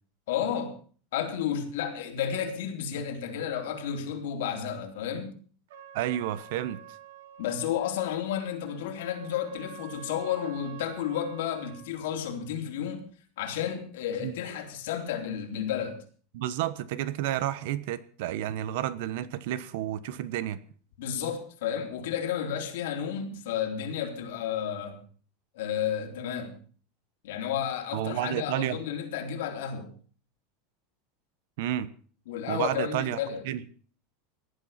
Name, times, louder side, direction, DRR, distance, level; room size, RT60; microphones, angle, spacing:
voice 1, 0.3-0.8 1.1-5.3 7.4-13.0 13.4-16.0 21.0-25.0 25.5-26.6 27.2-29.9 32.3-33.4, left 9 dB, 70° left, 3 dB, 3.7 m, -32 dB
Trumpet, 5.7-11.9, right 8 dB, 85° right, 3.6 m, -48 dB
voice 2, 5.9-6.8 14.2-14.3 16.3-20.6 27.9-28.8 31.6-31.9 32.5-33.2 33.5-33.6, right 12 dB, 55° right, 17 dB, 1.0 m, -30 dB
18.0 x 11.5 x 5.8 m, 0.43 s
supercardioid pair, 180°, 0 cm